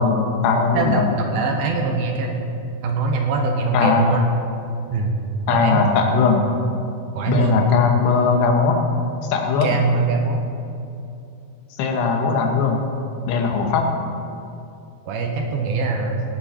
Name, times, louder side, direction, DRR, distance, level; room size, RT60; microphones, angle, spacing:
voice 1, 0.0-1.1 3.7-4.1 5.5-6.4 7.3-8.8 9.3-9.8 11.8-12.8 13.3-13.9, left 5 dB, 80° left, 2 dB, 3.4 m, -19 dB
voice 2, 0.7-2.4 2.8-4.2 4.9-5.1 5.5-5.9 7.1-7.6 9.6-10.4 15.1-16.2, right 4 dB, 70° right, 2 dB, 2.7 m, -22 dB
18.0 x 10.5 x 4.4 m, 2.6 s
omnidirectional pair, 4.8 m